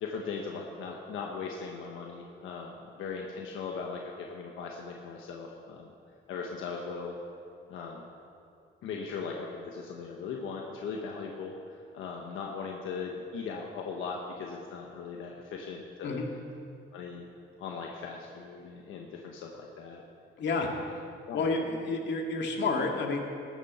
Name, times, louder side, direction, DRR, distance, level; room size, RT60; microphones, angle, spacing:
voice 1, 0.0-5.9 6.3-7.2 7.7-8.1 8.8-16.2 16.9-17.2 17.6-20.0 20.5-20.8 21.3-21.6, left 5 dB, 85° left, 0 dB, 1.2 m, -39 dB
voice 2, 20.4-20.7 21.3-23.2, left 3 dB, 65° left, 1 dB, 2.1 m, -30 dB
15.5 x 12.5 x 4.3 m, 2.5 s
cardioid pair, 90°, 20 cm